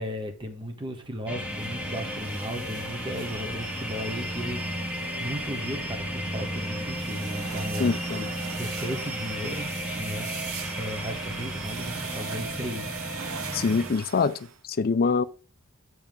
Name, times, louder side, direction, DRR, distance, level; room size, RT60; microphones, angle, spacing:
voice 1, 0.0-9.7 9.9-10.3 10.7-12.9, equal, 20° right, 1.0 m, -35 dB
sound 1, 1.3-13.9, equal, 5° right, 1.2 m, -34 dB
sound 2, 1.4-14.6, right 6 dB, 65° right, 0.7 m, -40 dB
voice 2, 7.8-8.2 13.5-14.4 14.8-15.2, left 4 dB, 45° left, 0.4 m, -24 dB
7.1 x 6.1 x 3.5 m
head